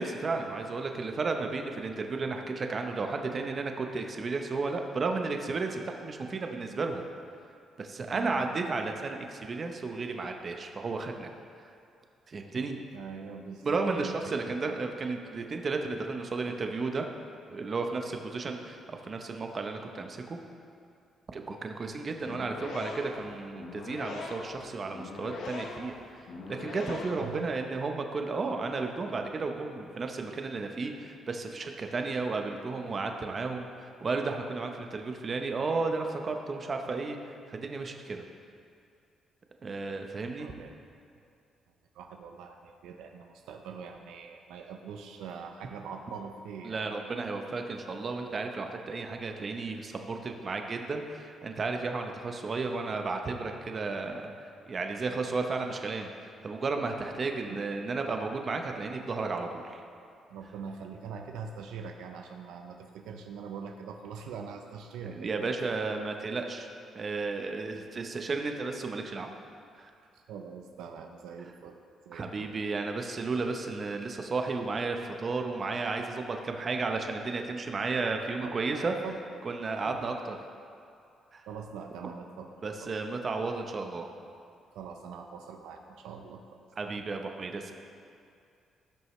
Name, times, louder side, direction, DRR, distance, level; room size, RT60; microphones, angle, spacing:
voice 1, 0.0-7.0 7.8-11.3 12.3-12.8 13.6-17.1 17.5-20.4 21.3-37.2 37.5-38.2 39.6-40.5 46.6-59.8 65.1-66.7 66.9-69.3 69.8-69.9 72.1-78.9 79.4-80.4 81.3-81.4 82.6-84.1 86.8-87.7, right 3 dB, 40° right, 4 dB, 0.9 m, -33 dB
voice 2, 12.9-14.8 16.5-16.6 21.4-21.6 27.1-27.5 40.4-40.7 41.9-46.8 57.5-58.0 60.3-65.6 70.1-71.8 72.0-72.5 78.4-79.2 79.8-80.1 81.5-82.5 82.8-82.9 84.7-87.0, right 6 dB, 90° right, 4 dB, 0.6 m, -43 dB
sound 1, 22.2-27.4, left 3 dB, 75° left, 1.0 m, -41 dB
16.0 x 6.3 x 3.2 m, 2.4 s
cardioid pair, 90°, 0 cm